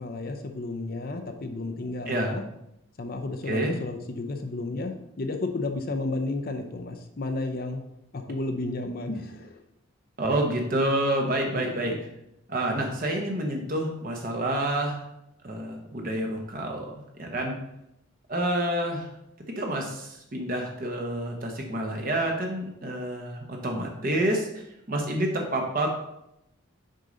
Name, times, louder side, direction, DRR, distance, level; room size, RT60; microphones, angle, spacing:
voice 1, 0.0-2.4 3.0-7.8 8.1-9.6 11.5-11.9, left 2 dB, 45° left, 6 dB, 0.6 m, -32 dB
voice 2, 10.2-11.9 12.5-15.0 15.4-17.5 18.3-19.1 19.6-24.6 24.9-25.9, right 1 dB, 40° right, 1 dB, 0.9 m, -28 dB
6.4 x 5.3 x 3.9 m, 0.82 s
head